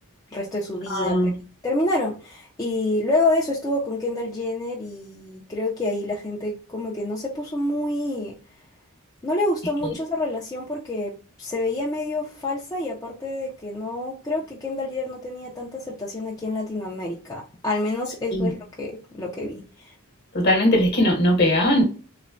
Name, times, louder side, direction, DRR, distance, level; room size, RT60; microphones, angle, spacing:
voice 1, 0.3-1.2 1.6-8.3 9.2-11.1 11.4-19.9, left 2 dB, 15° left, 0.4 m, -27 dB
voice 2, 0.9-1.3 9.8-9.9 18.3-18.5 20.3-21.8, equal, 50° left, 1.0 m, -19 dB
3.1 x 2.1 x 2.5 m
head